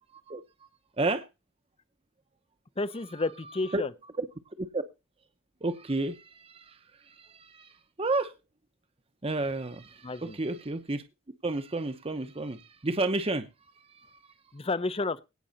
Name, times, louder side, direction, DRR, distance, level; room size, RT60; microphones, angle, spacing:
voice 1, 2.8-3.9 10.0-10.4 14.5-15.2, left 3 dB, 30° left, 0.6 m, -31 dB
voice 2, 5.6-8.3 9.2-11.0 11.4-13.5 13.8-14.3, right 2 dB, 30° right, 0.8 m, -32 dB
17.5 x 6.1 x 4.1 m
head